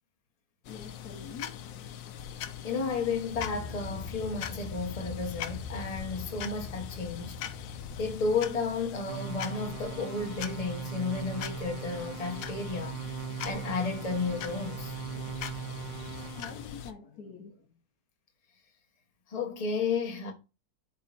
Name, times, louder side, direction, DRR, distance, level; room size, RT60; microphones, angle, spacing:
sound 1, 0.6-16.9, left 10 dB, 90° left, 1.5 m, -42 dB
voice 1, 0.7-1.5 16.3-17.7, left 5 dB, 60° left, 1.3 m, -45 dB
voice 2, 2.6-7.4 8.0-15.0 19.3-20.3, left 4 dB, 25° left, 1.2 m, -33 dB
sound 2, 3.3-8.4, left 3 dB, 5° left, 3.4 m, -42 dB
sound 3, 9.1-16.6, right 9 dB, 75° right, 1.7 m, -40 dB
12.0 x 4.2 x 2.6 m
omnidirectional pair, 1.9 m